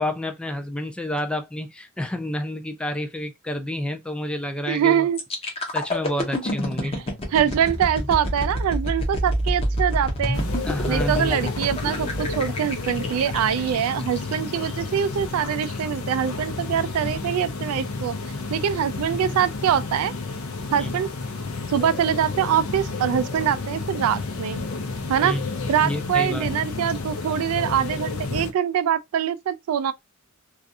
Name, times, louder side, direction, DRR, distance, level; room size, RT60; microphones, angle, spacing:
voice 1, 0.0-5.1 5.7-6.9 10.6-11.4 20.8-21.0 25.2-25.5 25.8-26.5, left 1 dB, 5° left, 0.4 m, -29 dB
voice 2, 4.7-5.2 6.8-7.0 7.3-10.4 10.9-18.2 18.5-20.1 20.7-21.1 21.7-24.6 25.1-25.4 25.7-29.9, right 9 dB, 90° right, 0.3 m, -24 dB
sound 1, 5.2-15.0 15.5-15.6, equal, 25° left, 0.7 m, -28 dB
sound 2, 10.3-28.5, left 3 dB, 85° left, 0.6 m, -31 dB
2.4 x 2.3 x 2.6 m
head